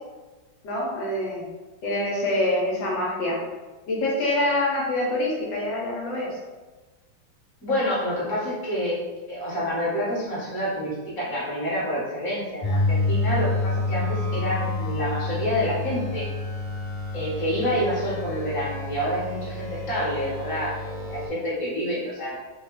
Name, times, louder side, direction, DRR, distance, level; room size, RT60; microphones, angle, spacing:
voice 1, 0.6-1.5 1.8-3.4 3.9-6.4, left 1 dB, 75° left, -4 dB, 1.4 m, -25 dB
voice 2, 7.6-9.0 9.3-16.3 17.1-22.4, equal, 15° left, -9 dB, 0.8 m, -28 dB
sound 1, 12.6-21.3, left 2 dB, 60° left, 1.0 m, -28 dB
3.2 x 2.3 x 3.1 m, 1.2 s
omnidirectional pair, 2.1 m